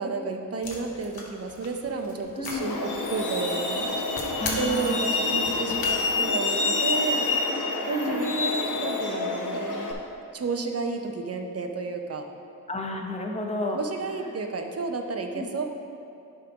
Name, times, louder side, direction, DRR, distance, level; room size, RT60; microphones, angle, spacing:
voice 1, 0.0-4.2 4.5-7.3 7.9-9.9 10.3-12.3 13.7-15.6, right 4 dB, 45° right, 4 dB, 0.6 m, -31 dB
sound 1, 0.6-5.9, left 3 dB, 85° left, 1.2 m, -39 dB
voice 2, 2.4-2.7 4.4-5.1 6.8-6.9 7.9-8.3 12.7-13.8 14.2-14.3 15.3-15.5, left 2 dB, 20° left, 2 dB, 0.7 m, -32 dB
Truck, 2.5-9.9, left 3 dB, 60° left, 1.0 m, -27 dB
10.5 x 3.6 x 5.0 m, 2.6 s
wide cardioid pair, 125°, 35 cm